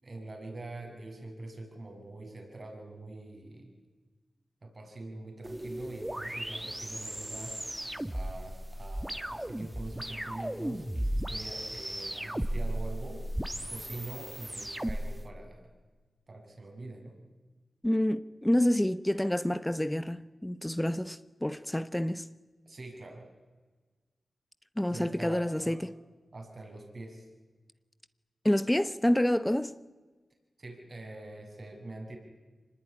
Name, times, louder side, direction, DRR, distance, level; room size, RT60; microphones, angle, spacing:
voice 1, 0.0-3.7 4.6-7.6 8.1-13.2 13.7-15.6 16.3-17.2 22.6-23.2 24.9-25.8 26.3-27.3 30.6-32.2, right 2 dB, 55° right, 6.9 m, -44 dB
sound 1, 5.4-15.2, right 1 dB, 15° right, 2.1 m, -36 dB
voice 2, 17.8-22.3 24.8-25.9 28.4-29.7, left 1 dB, 10° left, 1.0 m, -28 dB
25.0 x 20.0 x 9.9 m
cardioid pair, 40°, 0 cm